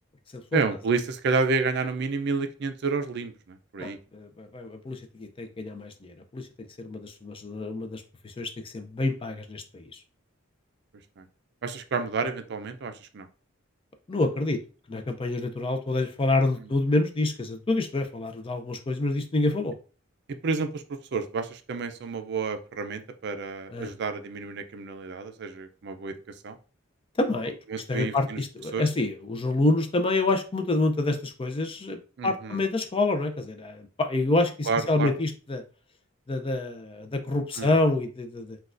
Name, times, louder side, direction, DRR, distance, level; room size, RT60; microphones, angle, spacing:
voice 1, 0.5-4.0 11.2-11.3 11.6-13.3 16.6-16.7 20.3-26.1 26.4-26.6 27.7-28.4 28.7-28.8 32.2-32.6 34.7-35.1 37.6-37.7, right 4 dB, 55° right, 8 dB, 0.4 m, -30 dB
voice 2, 3.8-6.5 6.8-10.0 14.1-14.6 14.9-19.7 23.7-23.9 27.2-27.5 27.9-35.6 36.3-38.6, left 2 dB, 25° left, 6 dB, 0.4 m, -27 dB
6.1 x 2.3 x 2.5 m, 0.36 s
head